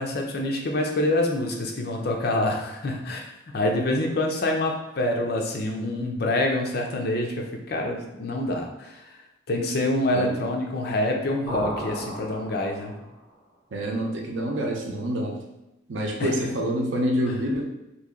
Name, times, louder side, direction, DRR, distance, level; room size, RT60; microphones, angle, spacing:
voice 1, 0.0-3.3 3.5-9.2 9.5-13.0 16.2-16.3, left 1 dB, 55° left, 2 dB, 0.5 m, -26 dB
sound 1, 11.5-13.2, equal, 25° left, 1.2 m, -34 dB
voice 2, 13.7-15.4 15.9-17.7, equal, 75° right, 1 dB, 0.7 m, -27 dB
3.0 x 2.7 x 3.7 m, 0.97 s
head